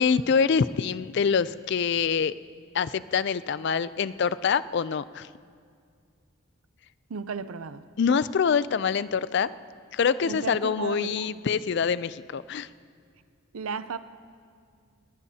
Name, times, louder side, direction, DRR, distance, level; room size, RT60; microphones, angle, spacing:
voice 1, 0.0-2.3 2.7-5.3 8.0-9.5 9.9-12.7, left 6 dB, 55° left, 0.3 m, -25 dB
voice 2, 7.1-7.8 10.2-11.3 13.5-14.0, right 5 dB, 85° right, 0.5 m, -34 dB
20.0 x 19.0 x 2.8 m
head